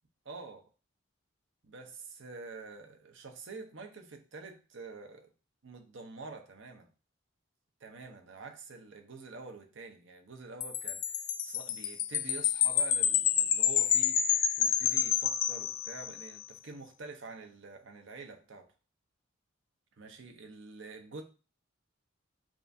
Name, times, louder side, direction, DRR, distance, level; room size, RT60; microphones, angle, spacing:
voice 1, 0.2-0.7 1.6-5.3 5.6-6.9 7.8-14.2 14.6-18.7 20.0-21.2, right 4 dB, 65° right, 0.7 m, -47 dB
Wind chime, 10.6-16.3, left 9 dB, 85° left, 0.4 m, -29 dB
7.2 x 2.5 x 2.7 m
head